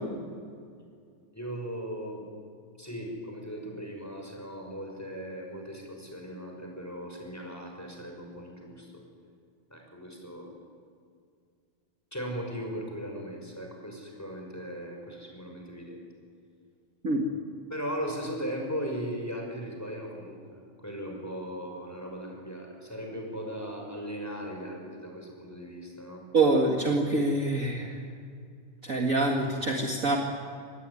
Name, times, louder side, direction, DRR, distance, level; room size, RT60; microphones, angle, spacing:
voice 1, 1.3-2.2 2.8-9.0 9.7-10.5 12.1-16.1 17.7-26.2, equal, 5° left, 1 dB, 5.6 m, -38 dB
voice 2, 26.3-27.9 28.8-30.2, right 2 dB, 35° right, 1 dB, 1.4 m, -25 dB
25.5 x 19.5 x 9.8 m, 2.3 s
omnidirectional pair, 4.1 m